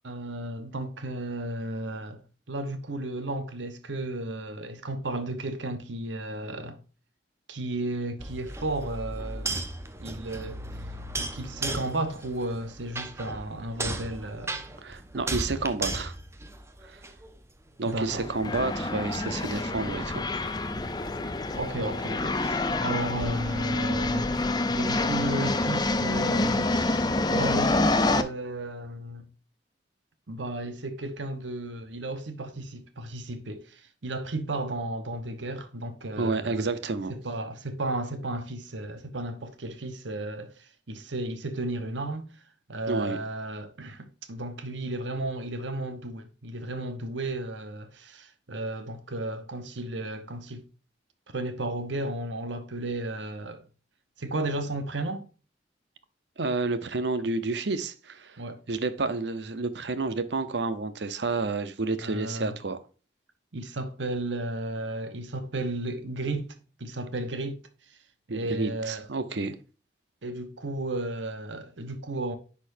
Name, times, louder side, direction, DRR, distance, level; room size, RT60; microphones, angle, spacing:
voice 1, 0.0-2.2 2.5-6.8 7.5-9.6 10.0-10.6 11.2-14.6 17.9-18.3 21.6-24.3 24.7-29.2 30.3-36.7 37.1-42.3 42.7-50.6 51.3-53.6 54.2-55.2 58.4-58.6 62.0-62.6 63.5-67.6 67.9-68.0 68.3-69.1 70.2-72.3, right 2 dB, 85° right, 1.1 m, -34 dB
sound 1, 8.2-17.4 17.9-22.7, right 2 dB, 15° right, 0.7 m, -37 dB
voice 2, 14.8-16.1 16.8-17.0 17.8-20.2 36.2-37.1 42.9-43.2 56.4-58.4 58.7-62.8 68.3-69.6, right 3 dB, 70° right, 0.8 m, -30 dB
sound 2, 18.1-28.2, left 2 dB, 20° left, 0.5 m, -27 dB
10.0 x 4.4 x 2.6 m
head